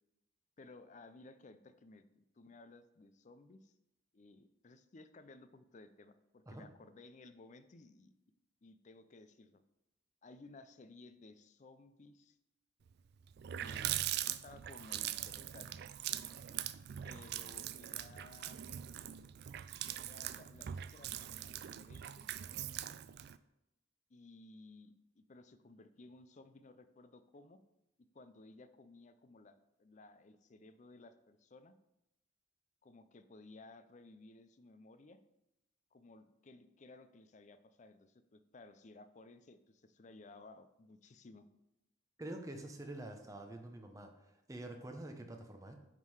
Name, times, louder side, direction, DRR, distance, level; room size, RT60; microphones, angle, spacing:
voice 1, 0.6-3.7 4.1-8.1 8.6-9.6 10.2-12.4 13.6-15.7 17.0-18.7 20.0-22.3 24.1-27.6 28.1-31.7 32.8-35.2 35.9-41.5, left 2 dB, 40° left, 11 dB, 0.5 m, -58 dB
Water tap faucet, 12.9-13.0 13.3-23.4, right 11 dB, 55° right, 0.3 m, -42 dB
voice 2, 42.2-45.8, right 1 dB, 15° right, 4 dB, 0.8 m, -47 dB
9.5 x 3.8 x 4.8 m, 0.88 s
head